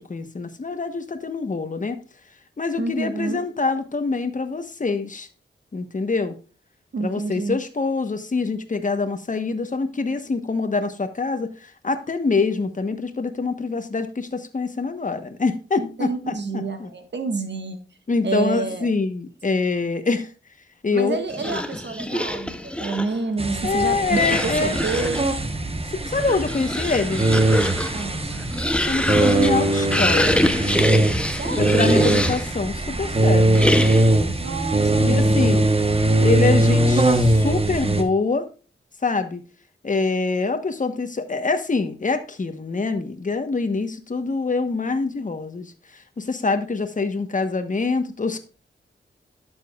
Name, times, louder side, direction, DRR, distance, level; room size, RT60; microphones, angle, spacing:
voice 1, 0.0-2.0 2.6-5.3 5.7-6.4 7.0-16.9 18.1-20.3 20.8-21.6 23.6-24.8 25.9-27.2 28.9-30.4 31.6-33.6 34.3-34.5 35.0-35.7 36.2-38.5 39.0-39.4 39.8-48.4, left 4 dB, 40° left, 9 dB, 1.1 m, -25 dB
voice 2, 2.8-3.4 6.9-7.6 15.8-17.8 18.2-18.9 20.9-25.3 27.9-28.5 31.4-31.8 34.4-35.4, right 4 dB, 60° right, 7 dB, 1.5 m, -28 dB
sound 1, 21.3-23.2 24.1-25.3 26.1-32.6 33.5-34.2, left 1 dB, 5° left, 0.8 m, -25 dB
sound 2, 23.4-38.0, right 1 dB, 30° right, 1.1 m, -21 dB
11.5 x 7.0 x 2.4 m, 0.36 s
wide cardioid pair, 85°, 20 cm